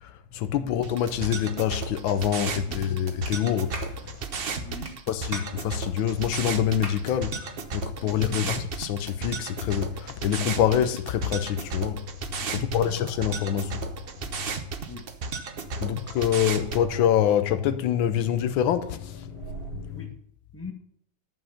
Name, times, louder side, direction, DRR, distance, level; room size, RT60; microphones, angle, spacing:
voice 1, 0.0-4.6 5.1-12.1 12.5-13.8 15.8-20.1, left 10 dB, 85° left, 1.5 m, -26 dB
sound 1, 0.8-16.8, right 4 dB, 60° right, 0.6 m, -34 dB
Clapping, 3.2-3.4 3.7-3.9 4.8-5.0 5.3-5.5 6.4-6.5 6.8-7.0, right 1 dB, 25° right, 1.6 m, -37 dB
voice 2, 4.6-5.0 8.0-8.5 12.4-13.0 14.9-15.0 15.7-16.0 19.9-20.1 20.5-20.7, left 3 dB, 10° left, 1.1 m, -43 dB
sound 2, 12.7-20.0, right 7 dB, 80° right, 1.9 m, -48 dB
11.5 x 5.7 x 5.7 m
omnidirectional pair, 2.1 m